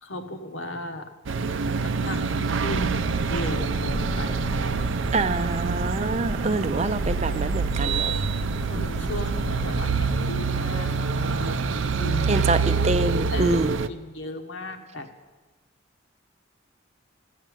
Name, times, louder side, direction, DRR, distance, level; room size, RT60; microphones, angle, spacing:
voice 1, 0.0-1.1 1.8-4.5 6.5-6.6 7.0-7.4 8.7-11.7 12.0-12.4 13.3-15.1, left 1 dB, 85° left, 6 dB, 1.3 m, -36 dB
sound 1, 1.3-13.9, right 5 dB, 80° right, 0.5 m, -26 dB
sound 2, 2.7-10.3, equal, 15° left, 0.5 m, -34 dB
voice 2, 5.1-8.1 12.3-13.7, right 2 dB, 35° right, 12 dB, 0.5 m, -26 dB
14.5 x 6.7 x 9.1 m, 1.3 s
head